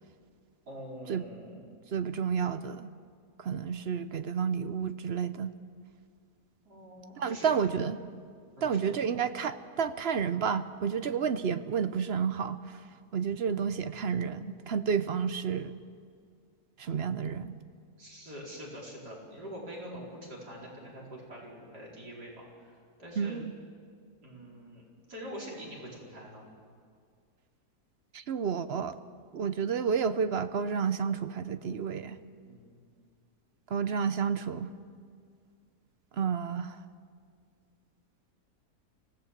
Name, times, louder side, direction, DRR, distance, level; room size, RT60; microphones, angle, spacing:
voice 1, 0.7-1.6 6.7-7.5 8.6-8.9 18.0-22.7 23.0-23.4 24.2-26.5 32.4-32.7, equal, 85° right, -3 dB, 5.1 m, -45 dB
voice 2, 1.9-2.9 3.4-5.5 7.2-8.0 8.6-12.8 13.1-15.7 16.8-17.5 23.2-23.5 28.1-29.0 29.3-32.2 33.7-34.7 36.2-36.8, right 6 dB, 55° right, 12 dB, 0.7 m, -30 dB
25.0 x 17.0 x 7.4 m, 2.1 s
omnidirectional pair, 1.7 m